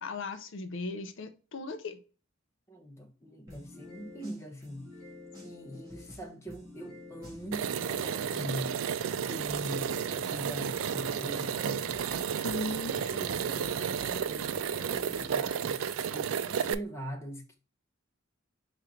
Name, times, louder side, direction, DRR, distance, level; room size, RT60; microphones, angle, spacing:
voice 1, 0.0-2.0 12.4-13.0, left 3 dB, 60° left, 0.4 m, -37 dB
voice 2, 2.7-4.9 5.4-8.8 9.1-11.9 12.9-17.5, equal, 15° left, 0.7 m, -42 dB
sound 1, 3.5-8.8 9.5-15.5, left 1 dB, 15° right, 1.7 m, -49 dB
sound 2, 7.5-16.7, right 7 dB, 75° right, 0.3 m, -32 dB
4.4 x 2.5 x 4.7 m
head